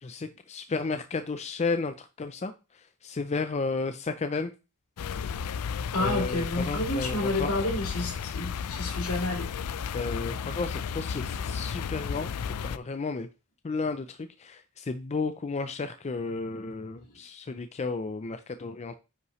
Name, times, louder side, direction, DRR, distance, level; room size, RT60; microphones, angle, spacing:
voice 1, 0.0-2.5 3.0-4.5 6.0-7.7 9.9-13.3 13.6-18.9, left 4 dB, 30° left, 0.4 m, -33 dB
sound 1, 5.0-12.8, left 6 dB, 90° left, 0.4 m, -33 dB
voice 2, 5.9-9.5, left 1 dB, 70° left, 3.1 m, -30 dB
9.6 x 5.6 x 3.1 m
head